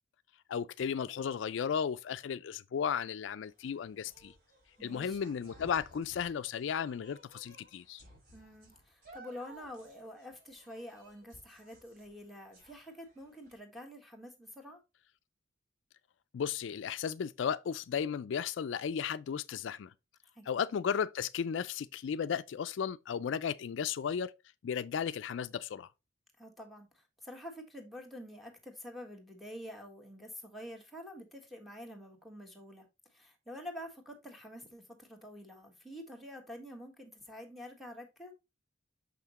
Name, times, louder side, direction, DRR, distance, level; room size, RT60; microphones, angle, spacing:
voice 1, 0.5-4.3 4.8-8.0 16.3-19.9 20.5-24.3 24.6-25.9, left 7 dB, 80° left, 0.4 m, -35 dB
sound 1, 3.4-13.6, right 1 dB, 55° right, 4.2 m, -58 dB
voice 2, 4.8-5.2 8.3-14.8 20.3-20.6 26.4-38.3, equal, ahead, 1.5 m, -48 dB
6.5 x 5.7 x 3.0 m
head